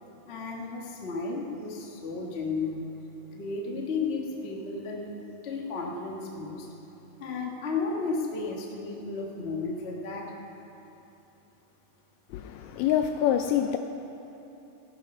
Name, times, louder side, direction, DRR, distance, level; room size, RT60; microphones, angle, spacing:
voice 1, 0.2-2.9 3.3-5.1 5.4-6.7 7.2-10.3, left 4 dB, 50° left, -1 dB, 0.7 m, -33 dB
voice 2, 12.3-13.8, left 10 dB, 80° left, 6 dB, 1.6 m, -26 dB
16.0 x 10.0 x 5.5 m, 3.0 s
omnidirectional pair, 3.6 m